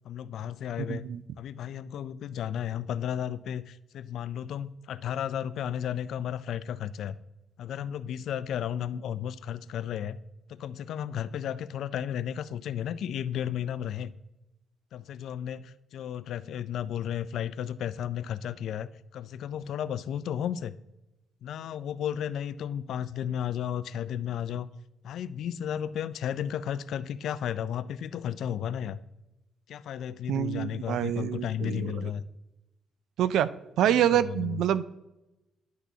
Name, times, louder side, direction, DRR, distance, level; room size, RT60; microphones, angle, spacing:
voice 1, 0.0-1.1 1.4-7.2 7.6-10.2 10.5-14.1 14.9-20.8 21.4-24.7 25.0-29.0 29.7-32.2 33.8-34.6, left 9 dB, 75° left, 16 dB, 0.3 m, -33 dB
voice 2, 0.9-1.2 30.3-32.1 33.2-33.5 33.8-34.8, right 11 dB, 80° right, 16 dB, 0.3 m, -26 dB
10.5 x 6.1 x 2.7 m, 0.98 s
cardioid pair, 90°, 0 cm